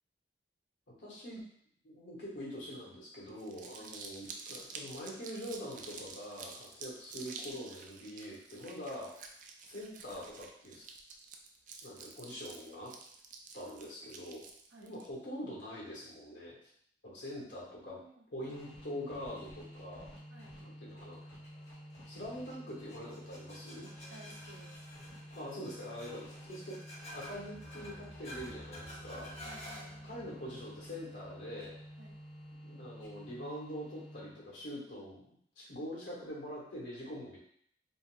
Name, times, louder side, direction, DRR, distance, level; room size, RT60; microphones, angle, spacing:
voice 1, 1.0-1.4 1.8-9.2 9.6-10.8 11.8-12.9 13.5-14.4 14.8-16.5 17.0-18.0 18.3-20.1 20.6-21.2 22.1-23.9 25.3-29.3 30.0-31.8 32.6-37.4, equal, 85° left, -5 dB, 1.1 m, -44 dB
Crumpling crinkling, 3.3-15.1, right 4 dB, 45° right, 0.3 m, -49 dB
voice 2, 17.7-18.5 20.3-20.5 24.1-24.8 29.4-29.9 32.0-32.2, right 2 dB, 85° right, -1 dB, 0.7 m, -56 dB
sound 1, 18.4-34.6, equal, 60° left, 0.9 m, -51 dB
sound 2, 21.2-32.5, equal, 35° left, 0.6 m, -52 dB
3.8 x 2.2 x 2.4 m, 0.66 s
head